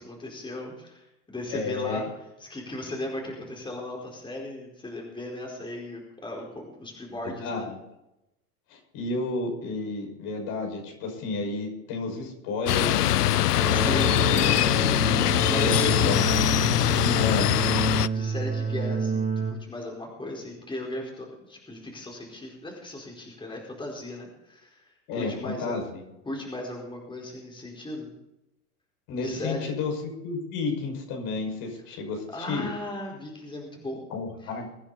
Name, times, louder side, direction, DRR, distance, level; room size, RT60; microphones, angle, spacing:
voice 1, 0.0-2.0 2.4-7.7 13.7-16.1 16.7-17.5 18.1-25.8 26.2-28.1 29.2-29.7 32.3-34.1 34.4-34.5, left 1 dB, 10° left, -1 dB, 4.7 m, -37 dB
voice 2, 1.5-2.0 7.2-7.8 8.7-13.4 14.2-14.6 15.5-16.2 17.2-17.5 25.1-26.0 29.1-32.7 34.1-34.7, left 3 dB, 50° left, 2 dB, 5.9 m, -31 dB
sound 1, 12.7-18.1, left 13 dB, 85° left, 0.6 m, -22 dB
sound 2, 13.6-19.5, right 5 dB, 15° right, 2.2 m, -29 dB
23.5 x 10.0 x 4.2 m, 0.88 s
hypercardioid pair, 95°, 45 cm